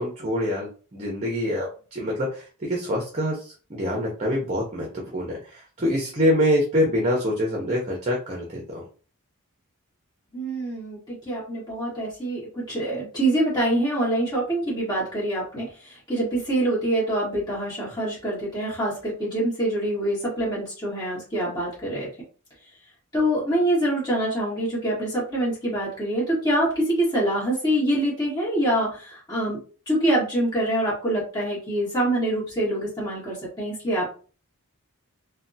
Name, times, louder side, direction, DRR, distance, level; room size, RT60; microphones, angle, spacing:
voice 1, 0.0-8.8, equal, 30° right, -1 dB, 0.7 m, -25 dB
voice 2, 10.3-22.1 23.1-29.6 29.9-34.0, right 1 dB, 20° left, -7 dB, 1.6 m, -25 dB
3.2 x 2.2 x 2.6 m, 0.37 s
head